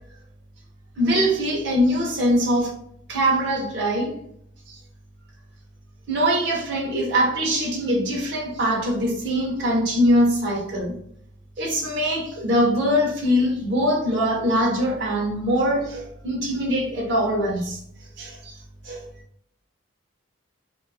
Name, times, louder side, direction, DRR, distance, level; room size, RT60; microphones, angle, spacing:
voice 1, 1.0-2.7 3.1-4.2 4.7-4.8 6.1-11.0 11.6-17.8 18.2-18.5 18.8-19.0, equal, 60° right, 0.7 m, -22 dB
2.8 x 2.3 x 2.3 m
head